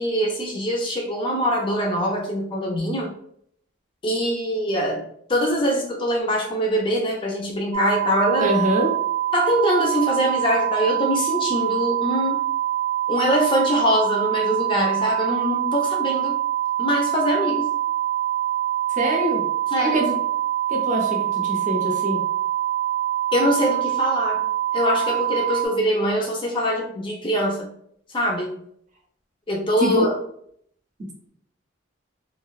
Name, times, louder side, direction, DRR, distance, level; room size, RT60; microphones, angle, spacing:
voice 1, 0.0-3.1 4.0-5.0 5.3-8.6 9.3-12.4 13.1-16.3 16.8-17.7 19.7-20.0 23.3-24.4 24.7-27.7 28.1-28.5 29.5-30.1, equal, 25° left, 1 dB, 0.5 m, -23 dB
sound 1, 7.7-25.7, right 13 dB, 85° right, 0.4 m, -24 dB
voice 2, 8.4-8.9 19.0-19.4 19.8-20.1 20.7-22.2 29.8-30.1, right 1 dB, 40° right, 0 dB, 0.6 m, -23 dB
2.6 x 2.1 x 2.3 m, 0.66 s
head